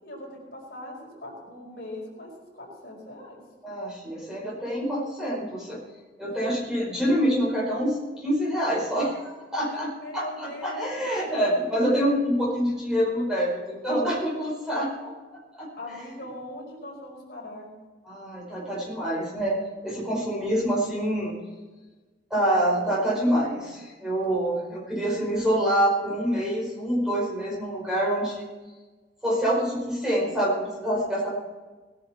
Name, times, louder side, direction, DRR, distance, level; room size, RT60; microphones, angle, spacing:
voice 1, 0.0-3.4 9.7-11.5 15.7-17.7, left 1 dB, 60° left, -2 dB, 5.2 m, -40 dB
voice 2, 3.6-5.8 6.2-15.1 15.6-15.7 18.0-19.6 19.8-21.4 22.3-28.4 29.2-31.4, equal, 5° right, -5 dB, 4.9 m, -26 dB
20.0 x 10.0 x 4.4 m, 1.3 s
head